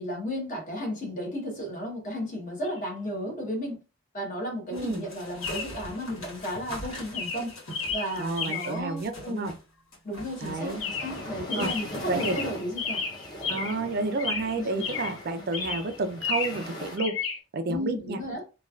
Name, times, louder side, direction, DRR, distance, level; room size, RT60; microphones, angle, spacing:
voice 1, 0.0-3.8 4.1-7.6 7.9-9.5 10.0-13.0 14.6-14.8 17.7-18.4, equal, 40° left, 0.9 m, -34 dB
Chirp tweet, 2.6-2.8 5.4-5.8 6.5-6.8 7.1-8.9 10.8-11.2 11.5-13.9 14.2-15.2 15.5-16.7 17.0-17.4, left 5 dB, 65° left, 0.6 m, -33 dB
sound 1, 4.7-9.6 9.9-12.2, left 1 dB, 80° left, 1.4 m, -43 dB
voice 2, 4.7-5.0 8.2-9.5 10.4-10.8 11.6-11.7 12.1-12.4 13.5-17.2 17.5-18.2, right 3 dB, 50° right, 0.4 m, -30 dB
sound 2, 10.4-17.0, left 1 dB, 20° left, 0.6 m, -40 dB
3.1 x 2.3 x 2.3 m
head